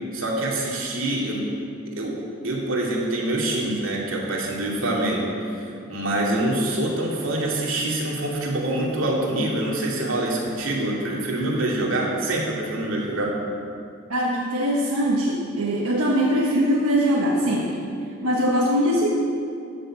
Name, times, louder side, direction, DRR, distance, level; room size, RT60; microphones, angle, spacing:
voice 1, 0.1-1.5 1.9-2.2 2.4-13.4, right 1 dB, 65° right, -3 dB, 2.5 m, -25 dB
voice 2, 14.1-17.8 18.2-19.1, equal, 90° right, -3 dB, 1.3 m, -22 dB
13.0 x 6.8 x 7.6 m, 2.5 s
head